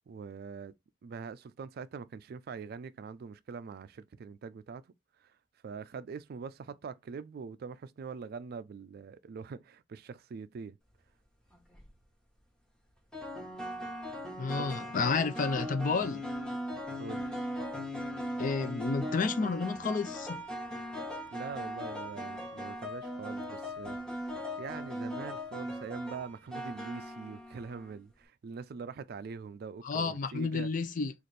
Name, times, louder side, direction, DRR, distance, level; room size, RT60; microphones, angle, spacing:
voice 1, 0.1-0.7 1.0-4.8 5.2-5.4 5.6-10.8 14.6-14.8 17.0-17.4 21.3-24.0 24.6-30.7, right 5 dB, 55° right, 0.3 m, -43 dB
sound 1, 11.5-11.9 13.1-28.0, equal, 5° left, 1.0 m, -39 dB
voice 2, 14.4-16.2 18.4-20.4 29.8-31.1, left 4 dB, 45° left, 0.5 m, -31 dB
4.1 x 2.5 x 3.2 m
head